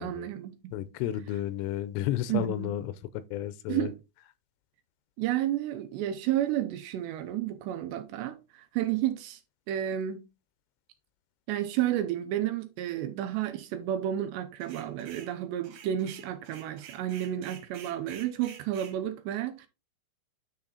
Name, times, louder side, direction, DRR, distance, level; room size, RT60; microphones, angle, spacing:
voice 1, 0.0-0.7 2.3-2.7 3.7-3.9 5.2-9.4 9.7-10.2 11.5-19.7, right 12 dB, 80° right, 2.6 m, -31 dB
voice 2, 0.7-2.9 3.3-3.9, left 12 dB, 85° left, 3.2 m, -32 dB
sound 1, 14.6-15.3 15.6-19.0, right 8 dB, 60° right, 3.0 m, -49 dB
9.5 x 4.3 x 3.9 m
omnidirectional pair, 5.5 m